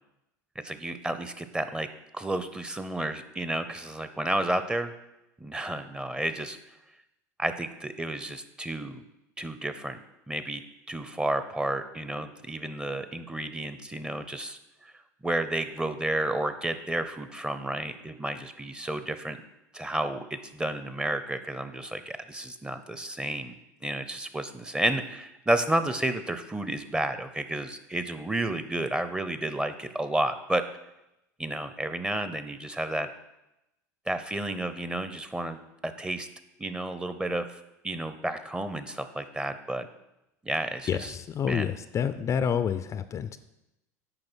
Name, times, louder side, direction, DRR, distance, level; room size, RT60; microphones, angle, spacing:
voice 1, 0.6-1.9 2.1-4.9 5.4-6.6 7.4-9.0 9.4-10.0 10.3-10.6 10.9-14.9 15.2-19.4 19.7-23.6 23.8-30.6 31.4-33.1 34.1-35.6 35.8-36.3 36.6-39.9 40.4-41.1 41.5-41.7, right 1 dB, 10° right, 10 dB, 0.8 m, -31 dB
voice 2, 40.9-43.4, left 7 dB, 35° left, 12 dB, 0.5 m, -28 dB
8.8 x 5.2 x 6.3 m, 0.90 s
hypercardioid pair, 90°, 9 cm